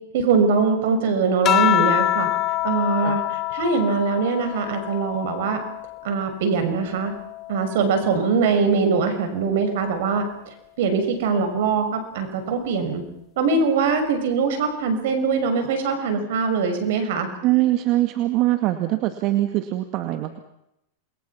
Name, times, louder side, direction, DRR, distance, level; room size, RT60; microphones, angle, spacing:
voice 1, 0.1-2.3 2.6-5.6 6.0-7.1 7.5-10.2 10.8-13.0 13.4-17.3, right 5 dB, 70° right, 7 dB, 6.4 m, -22 dB
sound 1, 1.4-6.2 6.7-8.4 9.6-10.1, left 14 dB, 40° left, 0.9 m, -26 dB
voice 2, 17.4-20.4, right 16 dB, 50° right, 7 dB, 2.1 m, -22 dB
28.5 x 22.0 x 6.0 m, 0.82 s
hypercardioid pair, 110°, 0 cm